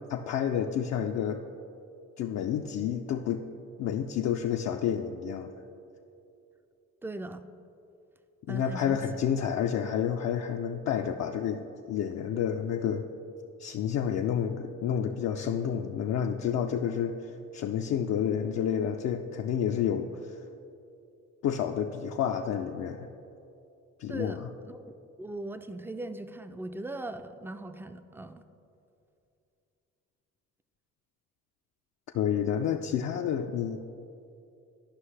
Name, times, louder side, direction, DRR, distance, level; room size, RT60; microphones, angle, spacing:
voice 1, 0.1-1.4 2.2-3.4 3.8-5.5 8.5-13.1 13.6-20.4 21.4-23.1 24.0-24.5 32.1-33.8, left 8 dB, 60° left, 3 dB, 0.4 m, -30 dB
voice 2, 7.0-7.4 8.5-9.0 24.1-28.4, right 2 dB, 10° right, 10 dB, 0.3 m, -39 dB
11.5 x 5.5 x 3.3 m, 2.7 s
cardioid pair, 90°, 30 cm